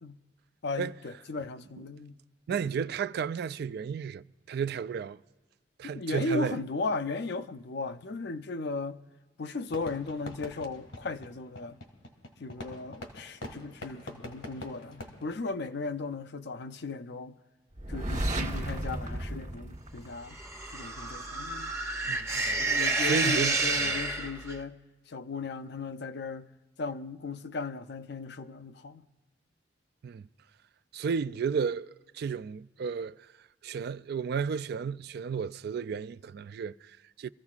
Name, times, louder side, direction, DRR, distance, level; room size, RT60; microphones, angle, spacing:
voice 1, 0.6-2.2 2.5-2.6 5.8-9.0 9.4-11.8 12.4-17.3 17.9-20.4 20.7-21.7 22.6-24.8 25.1-26.5 26.8-29.0, left 3 dB, 60° left, 0.5 m, -36 dB
voice 2, 2.5-5.2 5.8-6.6 22.1-23.8 30.0-30.3 30.9-33.2 33.6-37.3, right 6 dB, 60° right, 0.3 m, -33 dB
Fireworks, 9.7-16.2, left 1 dB, 90° left, 2.2 m, -45 dB
sound 1, 17.8-20.6, right 1 dB, 40° right, 1.2 m, -33 dB
sound 2, 20.3-24.6, right 3 dB, 15° right, 0.7 m, -30 dB
25.5 x 14.5 x 2.4 m
head